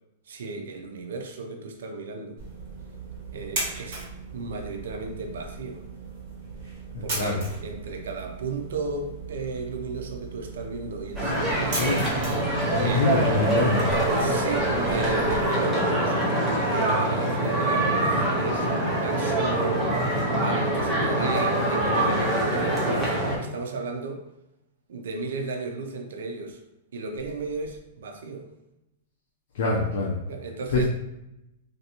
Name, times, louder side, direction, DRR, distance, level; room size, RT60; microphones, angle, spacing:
voice 1, 0.3-2.4 3.3-4.0 4.3-5.8 7.0-11.9 12.4-13.1 14.1-16.2 16.7-23.1 23.4-24.2 24.9-26.6 26.9-28.5 30.3-30.8, right 3 dB, 70° right, 3 dB, 0.5 m, -34 dB
sound 1, 2.4-15.4, right 3 dB, 40° right, 1.3 m, -38 dB
voice 2, 6.9-7.4 11.7-12.0 12.7-14.0 29.5-30.2 30.7-30.8, left 3 dB, 55° left, -3 dB, 0.5 m, -25 dB
sound 2, 11.2-23.4, right 1 dB, 5° right, 0.5 m, -24 dB
3.3 x 2.6 x 2.8 m, 0.89 s
supercardioid pair, 180°, 0 cm